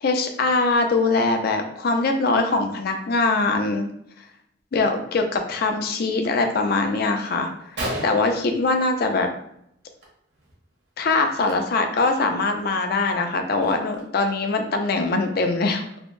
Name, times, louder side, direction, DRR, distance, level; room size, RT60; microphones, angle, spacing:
voice 1, 0.0-3.9 4.7-7.5 7.8-9.3 11.0-15.8, left 3 dB, 55° left, 5 dB, 0.4 m, -22 dB
Gunshot gunfire, 7.1-7.2 7.5-7.6 7.8-9.4 9.7-10.1 10.3-10.5 11.3-11.5 12.1-12.2 12.6-14.2, right 1 dB, 65° right, 0.9 m, -34 dB
3.4 x 2.0 x 2.5 m, 0.72 s
head